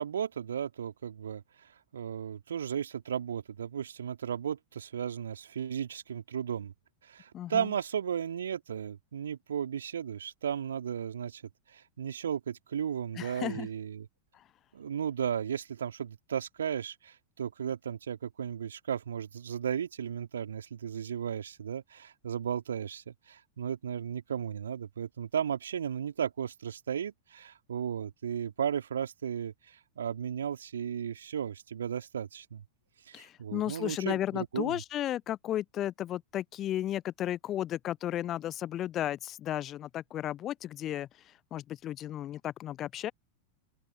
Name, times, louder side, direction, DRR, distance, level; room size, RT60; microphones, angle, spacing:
voice 1, 0.0-1.4 1.9-6.7 7.0-11.4 11.7-14.1 14.7-32.6 33.1-34.8, right 8 dB, 65° right, 3.2 m, -35 dB
voice 2, 7.3-7.7 13.2-13.7 33.1-41.1 41.5-43.1, left 12 dB, 30° left, 0.7 m, -34 dB
open air
figure-of-eight pair, 90°, 0 cm